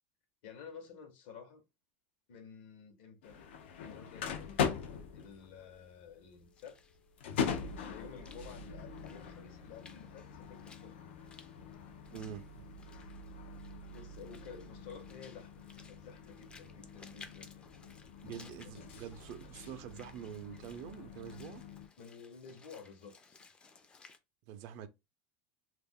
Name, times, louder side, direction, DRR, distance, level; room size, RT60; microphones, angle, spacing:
voice 1, 0.4-1.7 2.3-3.5 3.8-4.7 5.1-6.8 7.8-11.0 13.9-17.5 18.6-18.7 22.0-23.4, left 6 dB, 70° left, 0.9 m, -52 dB
sound 1, 3.2-21.9, left 6 dB, 90° left, 0.5 m, -42 dB
Walk footsteps / Splash splatter, 6.3-24.2, left 4 dB, 15° left, 0.4 m, -60 dB
voice 2, 12.1-12.6 18.2-21.6 24.5-24.9, right 9 dB, 55° right, 0.5 m, -46 dB
2.4 x 2.1 x 3.5 m
supercardioid pair, 140°, 6 cm